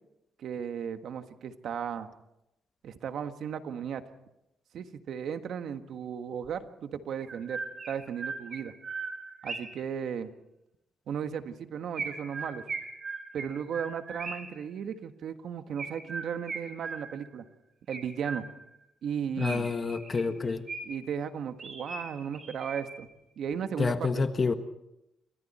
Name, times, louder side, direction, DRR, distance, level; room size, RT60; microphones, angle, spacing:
voice 1, 0.4-2.1 2.8-4.0 4.7-7.6 7.9-8.7 9.4-10.3 11.1-12.6 13.3-17.4 17.9-18.4 19.0-19.7 20.8-23.1 23.4-24.3, right 8 dB, 65° right, 8 dB, 1.6 m, -35 dB
Chirp tweet, 6.4-6.5 7.2-9.8 11.9-14.6 15.8-17.3 17.9-18.8 19.4-21.1 21.6-23.1, right 4 dB, 40° right, 6.3 m, -39 dB
voice 2, 19.4-20.6 23.8-24.5, left 4 dB, 35° left, 8 dB, 1.5 m, -28 dB
28.0 x 24.0 x 4.4 m, 0.87 s
cardioid pair, 90°, 0 cm